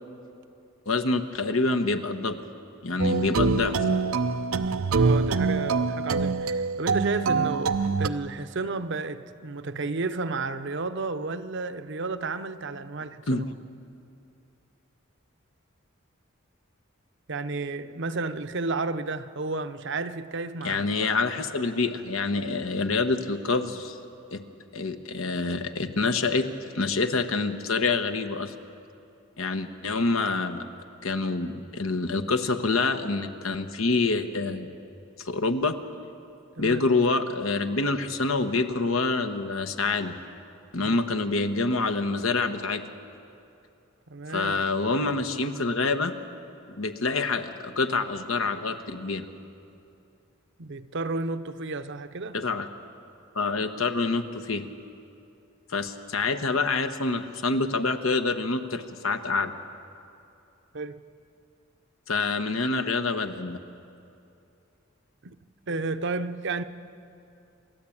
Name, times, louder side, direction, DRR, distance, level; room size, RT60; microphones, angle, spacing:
voice 1, 0.9-2.4 2.8-3.8 13.3-13.4 20.6-24.0 24.3-24.4 24.7-26.5 26.7-28.5 29.4-30.7 31.0-34.7 35.2-35.7 36.6-40.1 40.7-42.8 44.3-46.1 46.8-49.2 52.3-52.7 53.3-54.6 55.7-59.5 62.1-63.6, left 3 dB, 75° left, 1.2 m, -26 dB
sound 1, 3.0-8.1, right 4 dB, 90° right, 0.7 m, -25 dB
voice 2, 4.9-13.5 17.3-21.1 36.6-36.8 40.8-41.0 44.1-44.5 50.6-52.4 60.7-61.0 65.2-65.4 65.7-66.6, right 3 dB, 60° right, 0.8 m, -32 dB
27.5 x 13.5 x 8.7 m
head